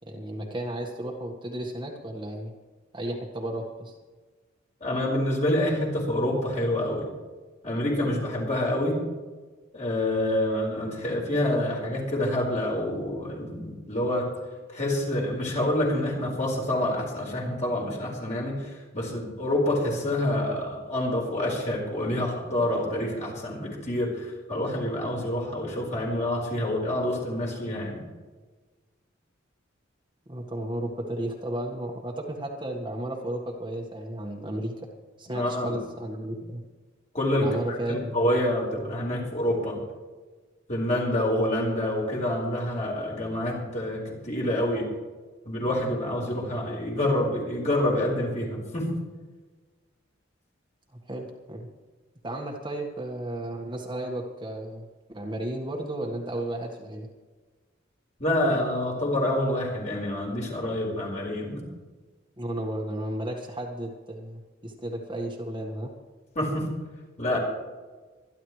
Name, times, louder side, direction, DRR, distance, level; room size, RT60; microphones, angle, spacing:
voice 1, 0.0-2.5 2.9-3.9 30.3-34.7 35.2-36.6 37.4-38.3 50.9-51.7 52.2-57.1 62.4-65.9, right 1 dB, 25° right, 0 dB, 1.6 m, -33 dB
voice 2, 4.8-7.1 7.6-9.0 9.7-14.3 14.7-28.0 35.3-35.7 37.1-39.8 40.7-44.9 45.4-48.9 58.2-61.6 66.3-66.7 67.2-67.4, left 1 dB, 40° left, -2 dB, 4.6 m, -27 dB
25.0 x 11.0 x 3.3 m, 1.3 s
head